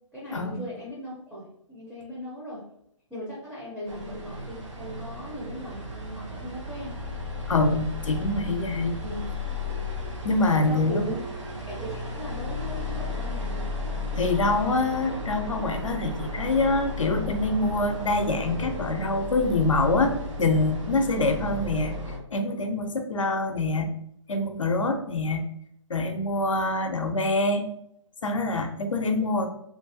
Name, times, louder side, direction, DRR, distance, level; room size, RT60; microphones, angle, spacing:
voice 1, 0.1-2.7 3.1-7.0 9.0-9.2 10.5-11.3 11.7-13.7 21.3-21.5, equal, 5° right, -8 dB, 0.6 m, -38 dB
sound 1, 3.9-22.2, left 2 dB, 75° right, 0.7 m, -34 dB
voice 2, 7.5-9.0 10.2-11.2 14.2-20.1 20.4-21.9 22.3-23.9 24.3-25.4 25.9-27.7 28.2-29.5, left 2 dB, 80° left, 5 dB, 0.5 m, -25 dB
2.5 x 2.2 x 2.5 m, 0.75 s
figure-of-eight pair, 130°, 16 cm